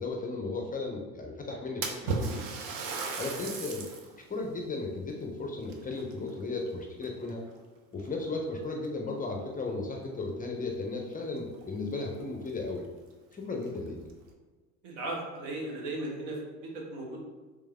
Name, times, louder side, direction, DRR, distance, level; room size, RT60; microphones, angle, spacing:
voice 1, 0.0-2.4 3.2-3.9 4.3-7.4 7.9-12.8 13.3-14.0, left 3 dB, 20° left, 1 dB, 0.5 m, -35 dB
Splash splatter, 1.8-4.1 4.6-4.7 5.6-6.7 7.0-7.5 8.3-8.4 8.8-8.9 11.1-11.2 11.5-11.6 12.2-12.3 12.7-12.8 13.5-14.1, right 4 dB, 50° right, 0.8 m, -35 dB
voice 2, 14.8-17.2, right 2 dB, 65° right, -2 dB, 1.3 m, -37 dB
3.5 x 3.3 x 3.3 m, 1.3 s
hypercardioid pair, 70°, 44 cm